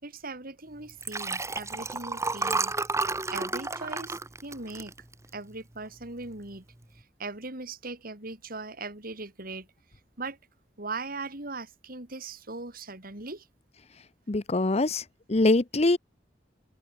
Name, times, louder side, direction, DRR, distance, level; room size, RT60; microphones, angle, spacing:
voice 1, 0.0-2.7 3.3-4.9 5.3-6.6 7.2-9.7 10.2-10.4 10.8-13.4, right 3 dB, 55° right, 4.3 m, -39 dB
Liquid, 0.9-5.5 6.0-6.3 6.5-6.6, right 3 dB, 15° right, 1.6 m, -31 dB
voice 2, 14.3-15.0 15.3-16.0, left 2 dB, 35° left, 0.9 m, -23 dB
open air
head